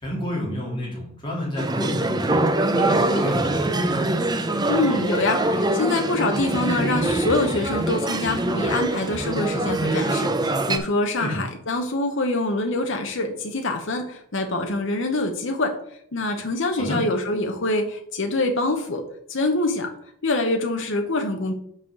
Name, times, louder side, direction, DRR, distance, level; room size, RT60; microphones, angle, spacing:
voice 1, 0.0-2.4 2.8-3.9 11.2-11.4 16.8-17.0, equal, 25° left, -4 dB, 2.9 m, -29 dB
sound 1, 1.6-10.8, right 2 dB, 20° right, 0.6 m, -24 dB
voice 2, 4.7-15.7 16.1-19.0 19.3-19.9 20.2-21.5, left 2 dB, 60° left, 4 dB, 1.0 m, -25 dB
6.0 x 4.7 x 6.1 m, 0.68 s
head